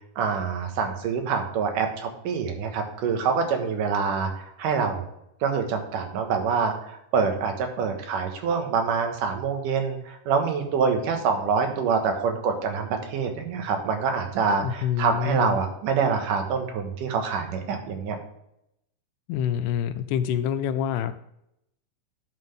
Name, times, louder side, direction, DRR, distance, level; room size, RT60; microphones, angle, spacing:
voice 1, 0.2-5.0 5.4-18.2, right 5 dB, 75° right, 4 dB, 2.9 m, -26 dB
voice 2, 14.6-15.6 19.3-21.1, left 9 dB, 80° left, 11 dB, 2.0 m, -26 dB
11.0 x 5.9 x 3.4 m, 0.80 s
omnidirectional pair, 3.8 m